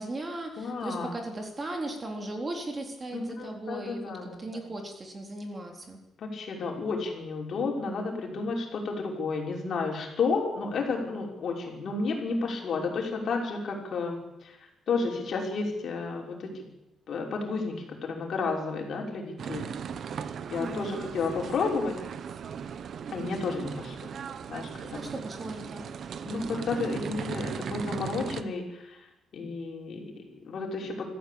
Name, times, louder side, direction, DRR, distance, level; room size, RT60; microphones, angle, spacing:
voice 1, 0.0-6.0 20.6-21.0 24.9-25.9, right 2 dB, 20° right, 3 dB, 3.6 m, -37 dB
voice 2, 0.6-1.1 3.1-4.6 6.2-14.6 14.9-16.6 17.1-19.7 20.5-21.9 23.1-24.1 24.5-25.0 26.2-29.0 29.3-31.1, left 4 dB, 50° left, 1 dB, 5.9 m, -32 dB
sound 1, 19.4-28.4, right 7 dB, 50° right, 1.1 m, -37 dB
25.5 x 15.0 x 8.6 m, 0.90 s
cardioid pair, 150°, 0 cm